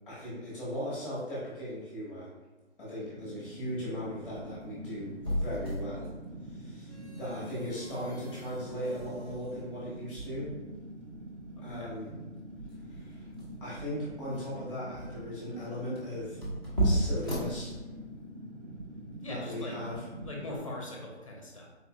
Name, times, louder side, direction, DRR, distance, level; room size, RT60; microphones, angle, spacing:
voice 1, 0.1-2.3 2.8-6.1 6.4-10.5 11.6-12.1 12.9-13.3 13.6-16.4 16.8-17.8 19.3-20.1, equal, ahead, -8 dB, 0.9 m, -38 dB
Fire, 3.1-20.6, right 1 dB, 90° right, 1.2 m, -45 dB
sound 1, 4.1-18.3, right 1 dB, 20° right, 0.6 m, -37 dB
sound 2, 9.0-9.4 10.1-10.6 11.4-11.8 12.6-13.0 13.7-14.2 14.9-15.3 16.2-16.6 17.4-17.8 18.7-19.1 19.9-20.3, right 3 dB, 55° right, 0.8 m, -49 dB
voice 2, 11.5-12.2 19.2-19.8 20.2-21.7, left 2 dB, 30° left, -1 dB, 0.5 m, -41 dB
3.9 x 2.6 x 2.5 m, 1.2 s
hypercardioid pair, 165°, 35 cm